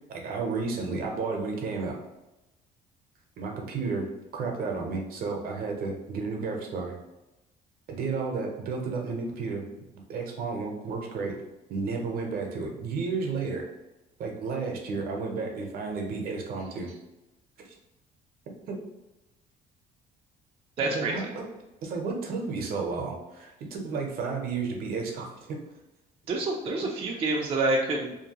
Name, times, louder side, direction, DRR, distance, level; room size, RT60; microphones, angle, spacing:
voice 1, 0.1-1.9 3.4-4.0 4.3-7.0 7.9-9.6 10.1-11.3 11.7-13.7 14.2-16.9 18.7-18.8 20.8-21.2 21.8-25.6, right 4 dB, 60° right, 1 dB, 0.7 m, -32 dB
voice 2, 20.8-21.2 26.3-28.2, right 2 dB, 35° right, -1 dB, 0.4 m, -27 dB
2.6 x 2.2 x 2.8 m, 0.98 s
cardioid pair, 110°, 17 cm